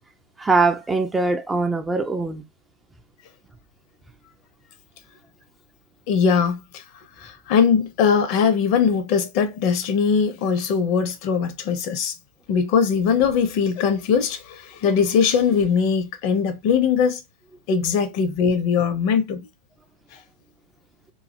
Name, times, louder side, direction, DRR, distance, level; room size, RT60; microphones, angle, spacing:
voice 1, 0.4-2.4, right 3 dB, 10° right, 0.4 m, -22 dB
voice 2, 6.1-6.8 7.2-12.1 12.5-17.2 17.7-19.5, left 6 dB, 45° left, 0.6 m, -21 dB
3.1 x 2.4 x 2.6 m
figure-of-eight pair, 90°, 0 cm